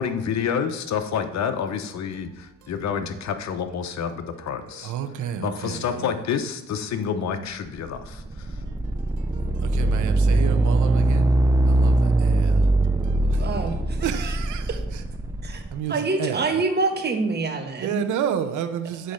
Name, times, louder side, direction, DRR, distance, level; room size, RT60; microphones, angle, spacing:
voice 1, 0.0-4.9 5.4-8.6, left 7 dB, 65° left, 0.9 m, -28 dB
voice 2, 4.8-6.2 9.7-11.3 11.7-11.9 12.2-12.6 14.0-15.0 15.7-16.6 17.8-19.1, right 9 dB, 80° right, 0.8 m, -30 dB
sound 1, 7.8-15.8, right 2 dB, 10° right, 0.5 m, -21 dB
voice 3, 13.2-14.3 15.4-15.6 15.9-18.0, right 3 dB, 35° right, 1.4 m, -26 dB
7.7 x 4.2 x 6.5 m
cardioid pair, 90°, 30 cm